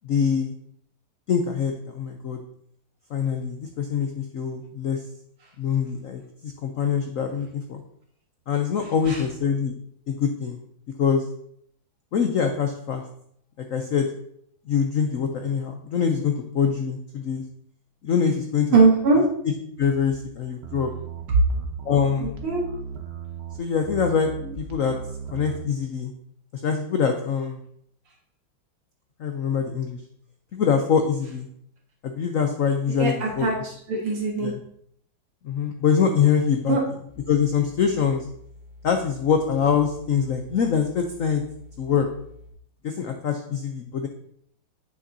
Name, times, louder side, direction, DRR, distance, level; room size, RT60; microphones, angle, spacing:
voice 1, 0.0-0.5 1.3-2.4 3.1-5.0 5.6-7.8 8.5-9.7 10.1-10.6 11.0-11.2 12.1-13.0 13.7-14.1 14.7-17.4 18.0-18.8 19.8-20.9 21.8-22.3 23.6-24.3 24.6-25.0 25.3-26.1 26.5-27.6 29.2-30.0 30.5-31.5 32.0-33.5 34.4-34.5 35.4-36.8 37.3-38.3 38.8-41.4 41.8-42.1 42.8-44.1, left 7 dB, 85° left, 4 dB, 0.7 m, -24 dB
voice 2, 18.7-19.2 21.3-21.4 22.2-22.7 32.9-34.5 36.7-36.8, right 4 dB, 80° right, -2 dB, 2.6 m, -21 dB
sound 1, 20.6-25.7, right 7 dB, 45° right, 0.9 m, -36 dB
sound 2, 37.1-42.5, left 2 dB, 65° left, 2.6 m, -48 dB
8.8 x 6.9 x 2.7 m, 0.68 s
omnidirectional pair, 2.3 m